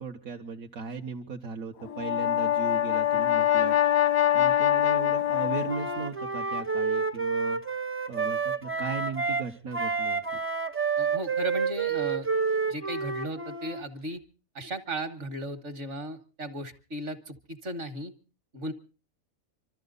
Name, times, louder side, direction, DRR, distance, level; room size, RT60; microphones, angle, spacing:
voice 1, 0.0-3.8 4.3-7.6 8.1-10.2, right 5 dB, 80° right, 1 dB, 1.5 m, -37 dB
Brass instrument, 1.8-6.1, left 11 dB, 90° left, 1.5 m, -24 dB
Wind instrument woodwind instrument, 5.7-9.5 9.7-13.8, right 5 dB, 15° right, 0.5 m, -29 dB
voice 2, 11.0-12.3 12.7-14.2 14.6-18.1 18.5-18.7, right 1 dB, 60° right, 8 dB, 1.8 m, -36 dB
25.5 x 13.5 x 3.9 m, 0.35 s
omnidirectional pair, 1.4 m